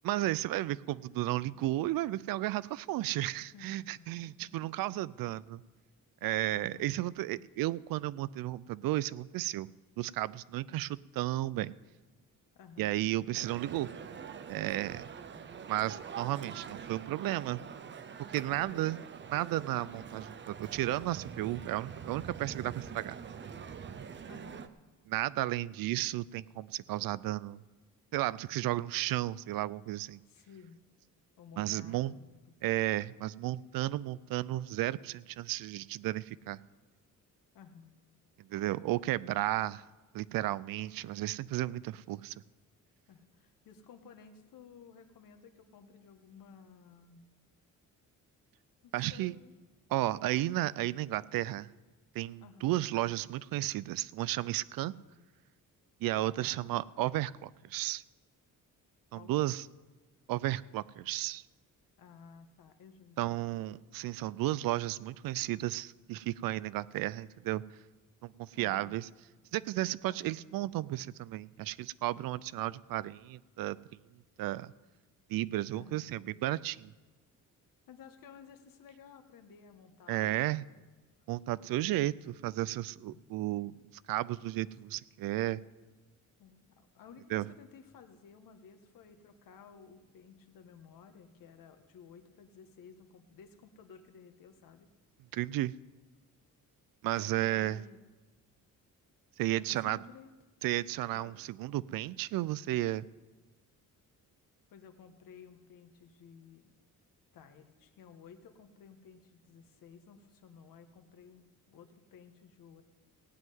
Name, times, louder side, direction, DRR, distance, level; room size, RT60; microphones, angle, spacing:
voice 1, 0.0-5.6 6.2-9.7 10.0-11.7 12.8-13.9 14.5-15.1 15.7-17.7 18.3-19.0 19.3-23.2 25.1-27.6 28.1-30.2 31.6-32.1 32.6-36.6 38.4-39.8 40.1-42.3 48.9-49.3 49.9-51.7 52.1-54.9 56.0-58.0 59.1-59.7 60.3-61.4 63.2-67.6 68.2-69.1 69.5-73.8 74.4-74.7 75.3-76.9 80.1-80.7 81.3-83.7 84.1-85.6 87.3-87.5 95.3-95.7 97.0-97.8 99.4-100.0 100.6-103.1, right 15 dB, 85° right, 20 dB, 0.5 m, -33 dB
voice 2, 3.4-5.0 6.5-7.0 10.7-10.9 12.5-12.9 15.3-15.5 18.5-18.8 24.3-24.7 30.3-30.8 31.4-32.3 37.5-38.0 38.7-38.9 43.1-47.3 48.8-49.5 52.4-52.7 54.8-54.9 56.4-56.8 59.1-59.5 62.0-63.5 68.5-69.0 70.1-70.4 74.4-74.5 75.7-76.2 77.9-80.9 81.6-81.7 83.1-83.2 86.4-94.9 97.2-98.0 99.5-100.3 101.1-101.3 104.7-106.7 107.3-112.8, left 6 dB, 75° left, 7 dB, 1.4 m, -55 dB
Male speech man speaking, 13.3-24.7, right 7 dB, 35° right, 0.6 m, -45 dB
16.0 x 5.6 x 9.3 m, 1.3 s
cardioid pair, 145°, 34 cm